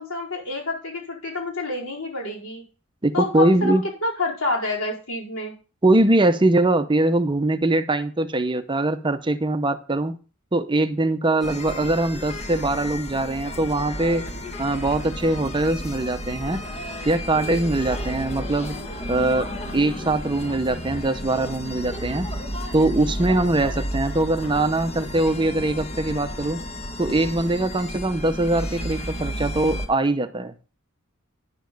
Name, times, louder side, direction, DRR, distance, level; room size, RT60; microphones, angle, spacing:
voice 1, 0.0-2.6 3.1-5.5, left 2 dB, 80° left, -3 dB, 4.7 m, -28 dB
voice 2, 3.0-3.8 5.8-10.2 10.5-14.2 14.6-16.6 17.1-18.8 19.1-22.3 22.7-26.6 27.0-30.5, right 2 dB, 20° right, 10 dB, 0.7 m, -22 dB
sound 1, 11.4-29.9, equal, 30° left, 1.5 m, -32 dB
10.5 x 7.0 x 5.3 m, 0.36 s
head